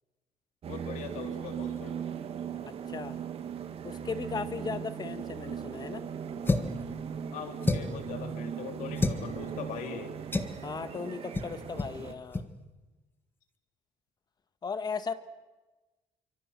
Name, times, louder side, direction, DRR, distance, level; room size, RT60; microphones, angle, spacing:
sound 1, 0.6-12.1, right 8 dB, 50° right, 2.3 m, -39 dB
voice 1, 0.7-1.9 7.3-10.2, left 6 dB, 90° left, 6 dB, 3.4 m, -41 dB
voice 2, 2.6-3.2 3.8-6.0 10.6-12.4 14.6-15.1, left 5 dB, 35° left, 11 dB, 1.5 m, -36 dB
sound 2, 6.5-6.8 7.6-8.0 9.0-9.2 10.3-10.6 11.3-11.5 11.8-12.0 12.3-12.5, left 2 dB, 15° left, 1.7 m, -28 dB
27.5 x 25.0 x 7.5 m, 1.2 s
cardioid pair, 135°, 13 cm